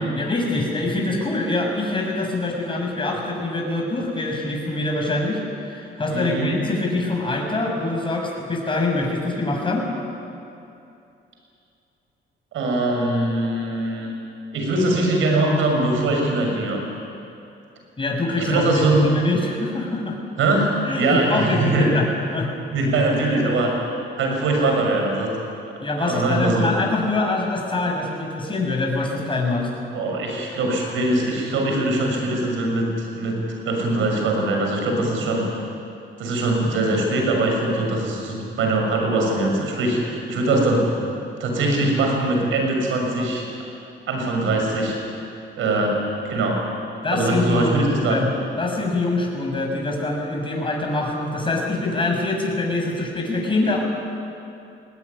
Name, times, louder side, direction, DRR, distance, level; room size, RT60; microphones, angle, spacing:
voice 1, 0.2-9.9 18.0-20.2 20.9-22.5 25.8-29.7 47.0-53.8, left 2 dB, 25° left, 0 dB, 6.4 m, -24 dB
voice 2, 6.1-6.5 12.5-14.1 14.5-16.8 18.4-19.0 20.4-21.9 22.7-23.7 24.2-25.3 26.0-26.7 29.9-32.9 33.1-33.4 33.6-35.5 36.2-40.9 41.4-43.5 44.1-45.0 45.6-46.0 46.2-46.6 47.1-48.2, right 2 dB, 80° right, 1 dB, 6.7 m, -22 dB
20.5 x 19.5 x 9.8 m, 2.7 s
cardioid pair, 90°, 20 cm